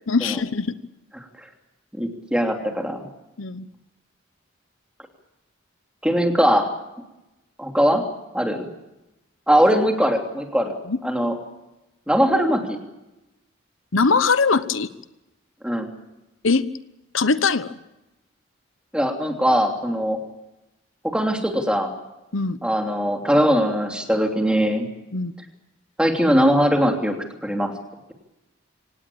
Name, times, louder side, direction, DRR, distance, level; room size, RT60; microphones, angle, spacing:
voice 1, 0.1-0.7 3.4-3.7 10.9-11.0 13.9-14.9 16.4-16.7 17.1-17.7 22.3-22.6 25.1-25.3, left 4 dB, 90° left, 14 dB, 1.0 m, -21 dB
voice 2, 2.0-3.0 6.0-6.7 7.6-8.0 8.3-8.7 9.5-10.7 11.0-11.3 12.1-12.8 15.6-15.9 18.9-20.2 21.0-21.9 22.6-24.9 26.0-27.2 27.4-27.7, equal, 5° right, 3 dB, 3.0 m, -20 dB
26.0 x 18.5 x 8.6 m, 0.96 s
head